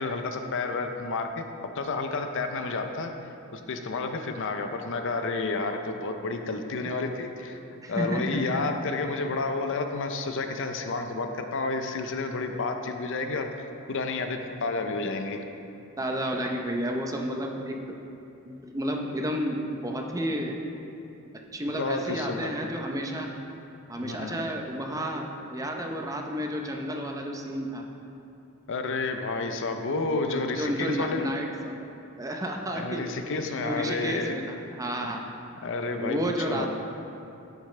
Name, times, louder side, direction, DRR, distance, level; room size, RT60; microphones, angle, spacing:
voice 1, 0.0-1.4 1.8-3.1 3.5-13.5 13.9-15.4 21.7-22.5 24.0-24.5 28.7-31.3 32.7-34.4 35.6-36.2 36.5-36.7, left 3 dB, 60° left, 6 dB, 0.6 m, -30 dB
voice 2, 7.8-8.4 16.0-18.0 18.5-20.6 21.5-23.3 23.9-27.8 30.1-31.9 32.2-33.1 33.6-35.3 36.0-36.7, equal, 15° right, 2 dB, 0.6 m, -31 dB
10.0 x 8.2 x 3.3 m, 2.8 s
head